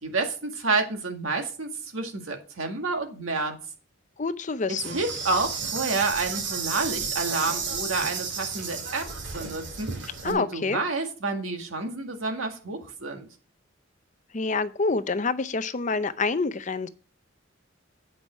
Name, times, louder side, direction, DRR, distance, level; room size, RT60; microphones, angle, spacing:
voice 1, 0.0-3.6 4.7-9.1 9.3-13.3, right 3 dB, 85° right, 1.9 m, -29 dB
voice 2, 4.2-5.0 10.2-10.8 14.3-16.9, left 4 dB, 35° left, 0.6 m, -27 dB
Insect, 4.8-10.3, right 5 dB, 60° right, 2.1 m, -32 dB
8.6 x 5.4 x 6.1 m
head